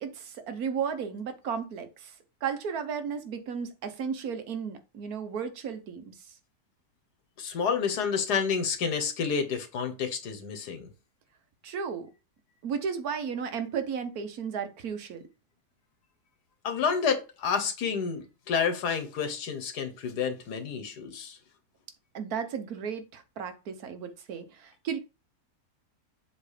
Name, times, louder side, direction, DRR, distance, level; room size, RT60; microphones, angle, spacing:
voice 1, 0.0-2.1 2.4-6.1 11.6-12.1 12.6-15.2 22.1-25.0, right 6 dB, 70° right, 1.4 m, -34 dB
voice 2, 7.4-10.9 16.6-21.4, left 6 dB, 80° left, 1.7 m, -29 dB
7.4 x 3.2 x 4.9 m
omnidirectional pair, 1.7 m